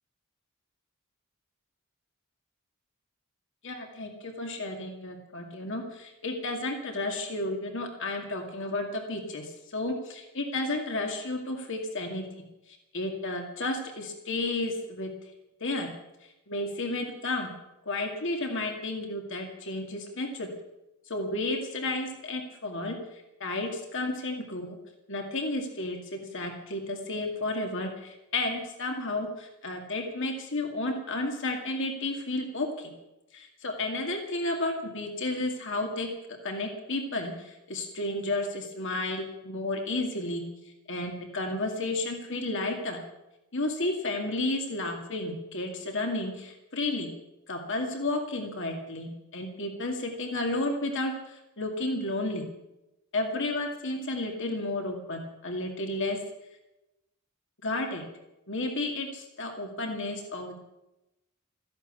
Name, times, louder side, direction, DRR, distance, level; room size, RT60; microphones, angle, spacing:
voice 1, 3.6-12.2 12.7-15.1 15.6-15.9 16.5-17.5 17.9-20.5 21.1-24.8 25.1-32.9 33.3-40.4 40.9-43.0 43.5-47.1 47.5-52.4 53.1-56.2 57.6-58.0 58.5-60.6, left 2 dB, 55° left, 3 dB, 2.3 m, -32 dB
14.5 x 11.0 x 8.3 m, 0.94 s
head